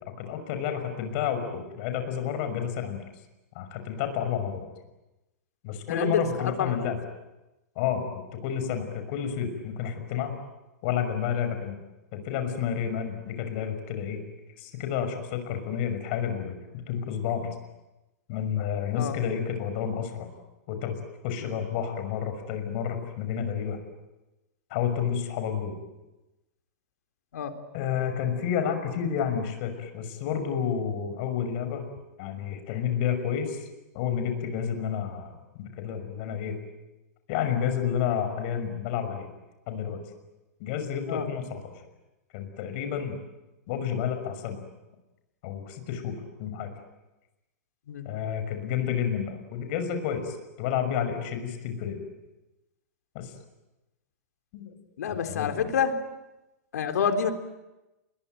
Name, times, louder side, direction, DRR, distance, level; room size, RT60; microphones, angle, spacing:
voice 1, 0.2-3.0 3.5-4.6 5.6-7.0 7.8-8.0 8.3-10.4 10.8-11.8 12.1-14.2 14.6-17.5 18.3-20.3 20.7-21.0 21.2-23.8 24.7-25.8 27.7-31.9 32.2-33.6 33.9-35.3 35.6-36.5 37.3-39.3 39.7-40.0 40.6-41.7 42.3-43.2 43.7-44.6 45.4-46.7 48.0-52.0 53.1-53.3 54.5-54.7 55.1-55.5, left 8 dB, 45° left, 8 dB, 6.0 m, -30 dB
voice 2, 5.9-6.8 19.0-19.2 21.4-21.5 27.3-27.5 41.1-41.3 47.9-48.1 55.0-56.0 56.7-57.3, left 7 dB, 80° left, 7 dB, 3.7 m, -28 dB
29.5 x 22.0 x 9.2 m, 1.0 s
hypercardioid pair, 150°, 9 cm